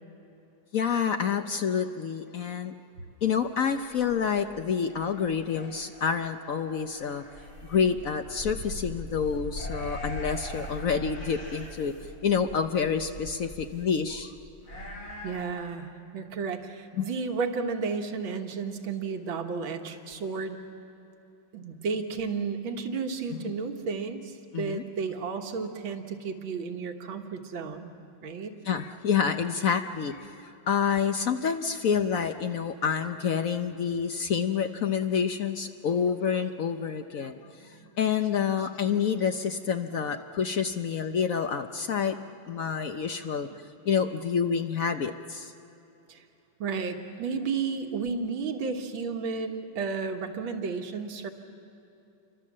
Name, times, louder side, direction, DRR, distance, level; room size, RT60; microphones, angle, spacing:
voice 1, 0.7-2.7 3.2-7.2 7.7-11.9 12.2-14.3 17.0-17.1 24.5-24.8 28.6-37.7 38.0-43.5 43.8-45.5, left 7 dB, 60° left, 7 dB, 0.9 m, -28 dB
sound 1, 3.9-15.4, left 1 dB, 85° left, 5.7 m, -41 dB
voice 2, 15.2-20.6 21.5-27.9 28.2-28.5 37.7-37.9 46.1-46.2 46.6-51.3, right 5 dB, 80° right, 4 dB, 2.3 m, -32 dB
29.0 x 24.0 x 7.5 m, 2.8 s
omnidirectional pair, 2.2 m